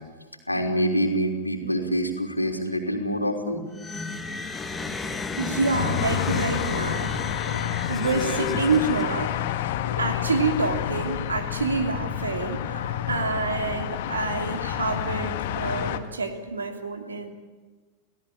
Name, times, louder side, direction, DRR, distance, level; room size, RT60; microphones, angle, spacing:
voice 1, 0.5-3.6 7.5-7.8 9.6-9.9 12.7-13.1, equal, 85° left, 3 dB, 3.5 m, -27 dB
sound 1, 3.7-9.4, left 4 dB, 10° left, 2.6 m, -33 dB
voice 2, 5.4-7.1 7.9-9.3 10.0-12.6 13.1-17.3, right 3 dB, 75° right, 6 dB, 2.9 m, -27 dB
sound 2, 5.7-16.0, left 10 dB, 50° left, 1.8 m, -29 dB
29.5 x 17.5 x 8.7 m, 1.4 s
figure-of-eight pair, 90°, 0 cm